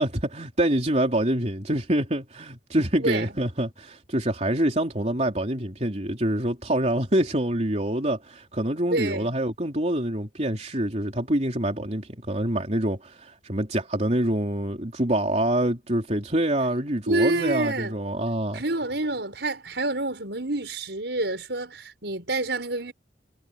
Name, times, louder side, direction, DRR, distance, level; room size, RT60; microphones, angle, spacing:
voice 1, 0.0-18.6, right 1 dB, 40° right, 3.6 m, -26 dB
voice 2, 3.0-3.3 8.9-9.3 17.1-18.0 18.5-22.9, right 2 dB, 70° right, 6.0 m, -27 dB
head